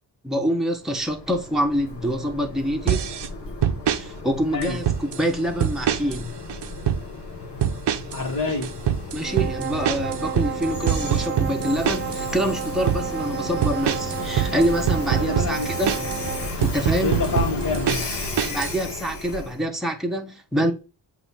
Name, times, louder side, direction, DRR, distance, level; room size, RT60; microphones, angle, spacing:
voice 1, 0.2-3.1 4.0-6.3 9.1-15.9 16.6-17.2 18.5-20.7, equal, ahead, 1.1 m, -26 dB
Train, 0.8-19.6, left 2 dB, 75° left, 1.5 m, -34 dB
Breakbeat drum loop, 2.9-3.3 3.6-4.0 4.6-5.2 5.6-6.2 6.5-7.0 7.6-8.2 8.5-12.2 12.6-13.0 13.6-16.2 16.6-18.8, right 9 dB, 80° right, 0.8 m, -24 dB
voice 2, 8.1-8.7 15.1-15.7 17.0-18.1, left 4 dB, 50° left, 1.8 m, -27 dB
sound 1, 9.2-16.6, right 9 dB, 30° right, 0.6 m, -32 dB
8.1 x 2.7 x 5.7 m
wide cardioid pair, 120°, 41 cm